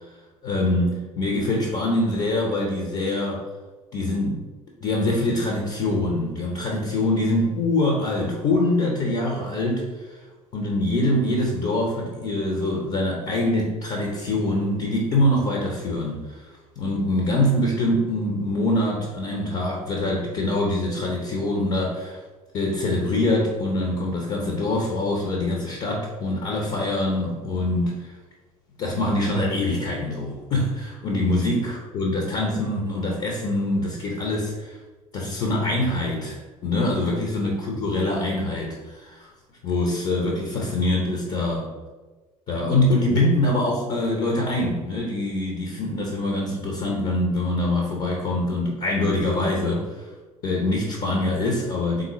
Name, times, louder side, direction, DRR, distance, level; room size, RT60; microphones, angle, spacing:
voice 1, 0.4-3.4 3.9-4.4 4.8-10.2 10.5-16.5 16.8-22.2 22.5-28.1 28.8-34.8 35.1-39.3 39.6-41.7 42.5-50.1 50.4-52.0, left 1 dB, 45° left, -1 dB, 0.9 m, -24 dB
3.9 x 3.7 x 3.0 m, 1.3 s
figure-of-eight pair, 55°, 18 cm